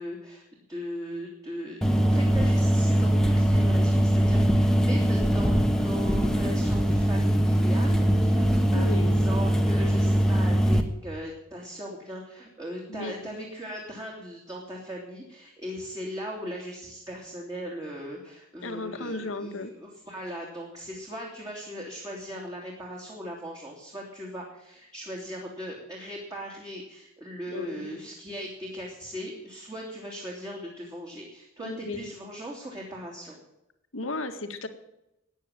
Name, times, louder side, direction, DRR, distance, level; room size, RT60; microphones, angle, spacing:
voice 1, 0.0-33.4, equal, 20° right, -2 dB, 2.8 m, -39 dB
sound 1, 1.8-10.8, equal, 5° left, 1.2 m, -22 dB
voice 2, 8.7-9.1 12.9-13.4 18.6-19.7 27.5-28.0 31.6-32.1 33.9-34.7, left 2 dB, 70° left, 8 dB, 1.8 m, -35 dB
13.5 x 9.2 x 8.8 m, 0.88 s
head